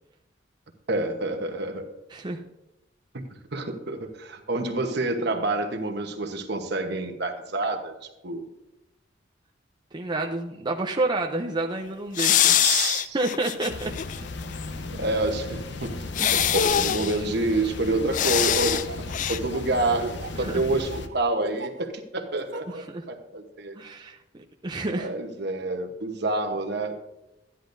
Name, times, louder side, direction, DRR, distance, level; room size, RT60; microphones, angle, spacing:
voice 1, 0.9-1.9 3.1-3.2 3.5-7.9 8.2-8.5 12.5-13.2 14.4-14.5 14.9-15.9 16.3-18.8 19.3-23.7 25.0-26.9, right 2 dB, 65° right, 4 dB, 1.1 m, -28 dB
voice 2, 9.9-12.6 13.1-13.9 16.2-16.4 20.3-20.6 22.7-23.0 23.8-24.2 24.6-25.1, right 2 dB, 25° right, 1 dB, 0.5 m, -29 dB
sound 1, 12.2-14.2 14.6-14.7 16.1-17.2 18.1-18.9 19.1-19.4, left 10 dB, 45° left, 0.3 m, -23 dB
sound 2, 13.7-21.1, left 3 dB, 70° left, 0.7 m, -36 dB
Laughter, 18.0-21.8 22.3-22.8, right 4 dB, 85° right, 0.7 m, -36 dB
13.0 x 10.0 x 2.6 m, 0.94 s
head